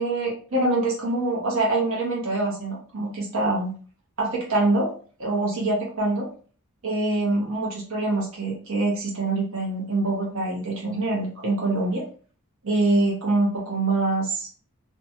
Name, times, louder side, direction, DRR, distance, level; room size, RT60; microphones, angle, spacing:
voice 1, 0.0-3.7 4.2-4.9 5.2-6.3 6.8-12.0 12.6-14.6, right 2 dB, 65° right, -3 dB, 1.0 m, -25 dB
2.7 x 2.4 x 2.7 m, 0.42 s
head